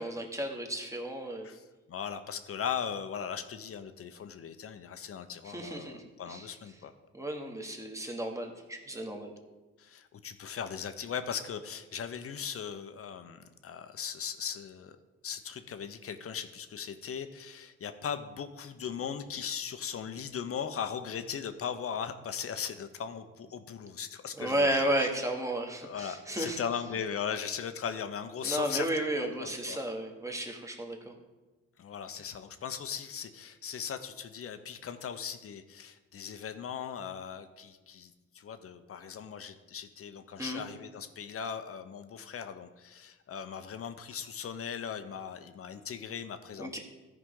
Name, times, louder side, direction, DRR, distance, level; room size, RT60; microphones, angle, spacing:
voice 1, 0.0-1.5 5.4-6.5 7.1-9.3 24.4-26.6 28.4-31.2 40.4-40.6 46.6-46.8, right 1 dB, 10° right, 2 dB, 1.4 m, -33 dB
voice 2, 1.4-6.9 9.8-15.0 15.2-25.1 25.8-29.0 29.4-29.8 31.8-46.8, left 7 dB, 50° left, 9 dB, 0.8 m, -38 dB
13.5 x 5.0 x 3.8 m, 1.2 s
cardioid pair, 90°, 30 cm